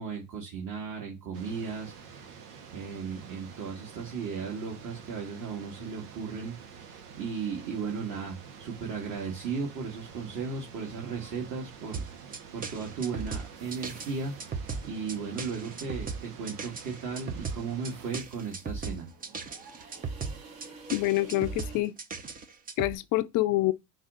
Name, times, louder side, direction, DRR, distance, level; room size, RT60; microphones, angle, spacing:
voice 1, 0.0-2.4 2.7-12.0 12.5-19.1, right 5 dB, 40° right, 1.9 m, -36 dB
sound 1, 1.3-18.1, right 6 dB, 80° right, 1.3 m, -48 dB
sound 2, 10.1-21.8, right 3 dB, 60° right, 3.2 m, -54 dB
sound 3, 11.9-23.0, right 5 dB, 20° right, 0.6 m, -37 dB
voice 2, 20.9-21.9 22.8-23.7, left 18 dB, 45° left, 0.5 m, -26 dB
5.4 x 2.6 x 3.7 m
hypercardioid pair, 95°, 47 cm